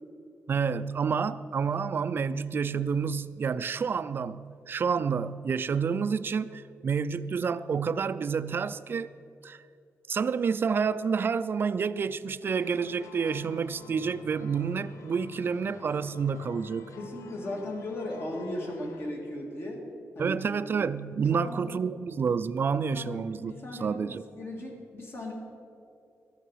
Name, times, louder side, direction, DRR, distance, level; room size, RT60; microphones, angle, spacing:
voice 1, 0.5-9.1 9.4-9.6 10.1-16.9 20.2-24.2, right 6 dB, 45° right, 0.3 m, -29 dB
sound 1, 12.4-19.1, left 4 dB, 90° left, 0.8 m, -49 dB
voice 2, 17.0-19.9 20.2-20.4 21.3-21.7 22.9-25.3, left 1 dB, 50° left, 2.1 m, -37 dB
13.5 x 8.3 x 5.6 m
wide cardioid pair, 140°, 5 cm